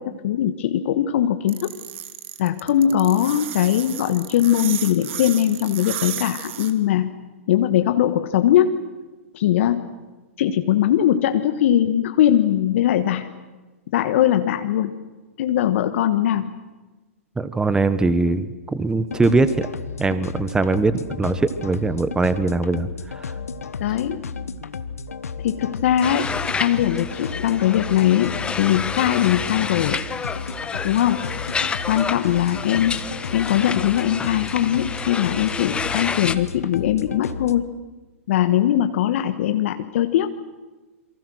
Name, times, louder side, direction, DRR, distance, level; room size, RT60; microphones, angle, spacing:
voice 1, 0.0-1.7 2.4-7.1 7.5-8.8 9.3-9.9 10.4-13.3 13.9-14.9 15.4-16.6 23.8-24.3 25.4-30.0 30.8-31.3 31.8-33.1 33.3-37.6 38.3-40.4, left 11 dB, 60° left, 8 dB, 1.4 m, -20 dB
sound 1, 1.5-6.7, right 11 dB, 55° right, 2.6 m, -33 dB
voice 2, 17.4-19.7 20.0-23.3, right 3 dB, 10° right, 14 dB, 1.2 m, -21 dB
sound 2, 19.1-37.6, left 5 dB, 80° left, 1.2 m, -33 dB
sound 3, 26.0-36.4, left 5 dB, 15° left, 1.1 m, -29 dB
28.5 x 23.5 x 6.4 m, 1.2 s
hypercardioid pair, 115°, 8 cm